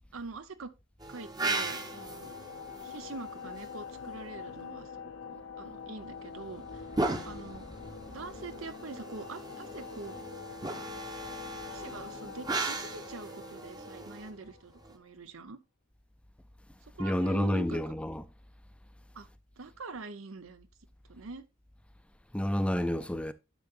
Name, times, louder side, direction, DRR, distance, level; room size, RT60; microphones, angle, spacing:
voice 1, 0.1-0.7 1.1-2.3 2.8-6.8 7.3-7.7 8.1-10.2 11.5-15.6 16.8-17.9 19.1-19.3 19.6-20.7 21.1-21.4, right 3 dB, 85° right, 0.8 m, -44 dB
sound 1, 1.0-4.2 6.0-15.0, right 2 dB, 20° right, 0.8 m, -38 dB
sound 2, 1.4-15.0, left 6 dB, 80° left, 0.7 m, -45 dB
voice 2, 17.0-18.2 22.3-23.3, equal, 5° left, 0.4 m, -29 dB
10.5 x 6.7 x 2.5 m
head